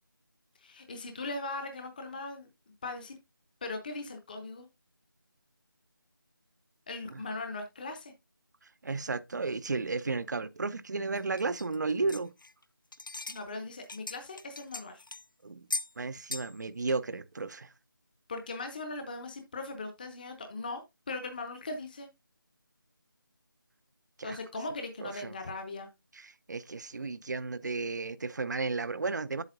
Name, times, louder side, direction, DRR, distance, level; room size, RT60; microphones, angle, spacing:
voice 1, 0.6-2.5 2.8-3.2 3.6-4.7 6.9-8.1 13.3-15.0 18.3-20.8 21.1-22.1 24.2-25.9, left 3 dB, 25° left, 0.8 m, -39 dB
voice 2, 8.8-12.3 15.4-15.7 16.0-17.7 24.2-24.4 25.0-25.3 26.1-29.4, right 3 dB, 55° right, 0.6 m, -33 dB
sound 1, 11.1-12.6 12.9-13.4 13.7-15.2 15.7-15.9 16.3-16.6 16.8-16.9 17.5-17.6, left 3 dB, 65° left, 0.8 m, -39 dB
8.0 x 7.7 x 2.6 m
figure-of-eight pair, 165°, 12 cm